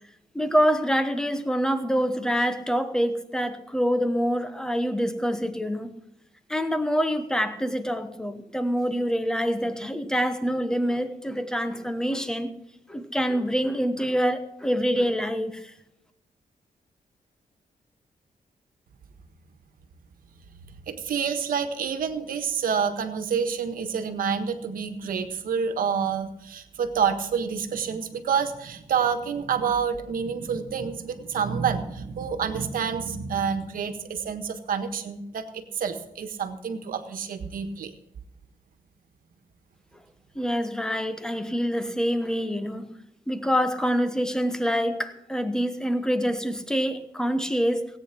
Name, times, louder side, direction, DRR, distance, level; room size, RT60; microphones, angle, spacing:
voice 1, 0.3-5.9 6.5-12.5 12.9-15.7 40.3-42.9 43.3-47.9, equal, 5° left, 9 dB, 1.1 m, -26 dB
voice 2, 20.9-37.9, right 6 dB, 80° right, 8 dB, 1.5 m, -28 dB
17.5 x 9.0 x 6.0 m, 0.83 s
wide cardioid pair, 145°, 14 cm